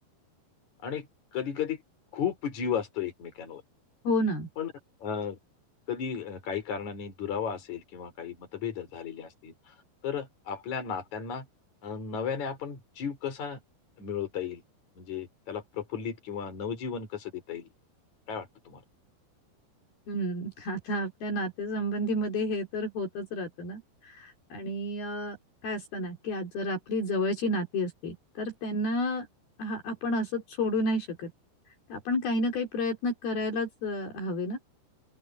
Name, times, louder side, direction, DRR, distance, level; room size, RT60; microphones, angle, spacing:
voice 1, 1.3-1.8 2.1-3.6 4.6-4.7 5.0-5.4 5.9-9.5 10.0-11.5 11.8-13.6 14.0-14.6 15.0-17.7 18.3-18.8, left 7 dB, 45° left, 5.5 m, -34 dB
voice 2, 4.1-4.5 20.1-25.4 25.6-29.3 29.6-31.3 31.9-34.6, left 1 dB, 60° left, 5.3 m, -31 dB
open air
omnidirectional pair, 5.0 m